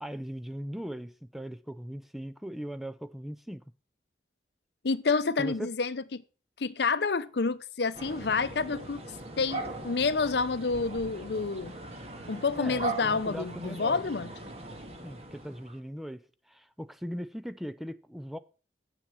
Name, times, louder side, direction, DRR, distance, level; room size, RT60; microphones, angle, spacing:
voice 1, 0.0-3.6 5.4-5.7 12.5-14.0 15.0-18.4, equal, ahead, 0.4 m, -39 dB
voice 2, 4.8-6.2 6.6-9.0 9.4-11.8 12.3-14.3, left 4 dB, 70° left, 0.7 m, -29 dB
sound 1, 7.9-15.8, right 2 dB, 35° right, 1.9 m, -40 dB
10.0 x 7.4 x 5.8 m
head